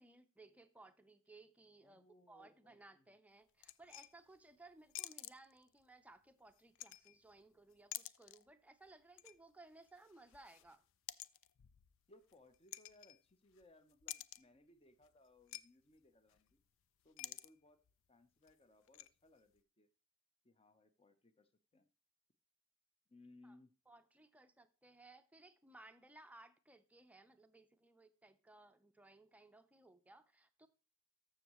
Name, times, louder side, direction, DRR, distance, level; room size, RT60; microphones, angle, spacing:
voice 1, 0.0-10.8 23.4-23.6 23.9-30.7, right 2 dB, 5° right, 0.6 m, -61 dB
voice 2, 1.8-3.1 12.1-16.6 17.0-17.8 18.1-19.9 20.4-21.9 23.1-23.7, left 2 dB, 25° left, 0.8 m, -66 dB
sound 1, 3.6-4.4 4.9-5.8 6.5-7.4 7.7-8.5 8.8-9.4 9.7-13.6 13.9-14.6 15.0-15.1 15.4-15.6 15.9-16.0 16.3-16.6 17.0-17.5 17.8-17.9 18.5-19.1, left 14 dB, 65° left, 0.4 m, -51 dB
14.0 x 6.4 x 3.1 m
head